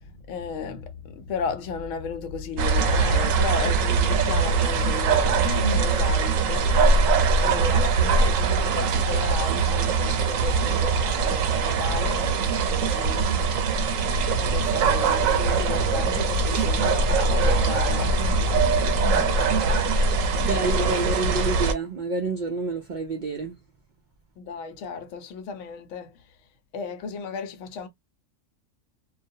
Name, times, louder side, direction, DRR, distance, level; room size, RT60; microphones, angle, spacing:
voice 1, 0.0-19.6 20.0-20.3 24.4-26.4 26.7-27.9, left 5 dB, 75° left, 0.9 m, -34 dB
sound 1, 2.6-21.7, right 4 dB, 90° right, 1.0 m, -22 dB
voice 2, 20.4-23.6, right 3 dB, 65° right, 0.4 m, -28 dB
2.3 x 2.0 x 2.6 m
omnidirectional pair, 1.3 m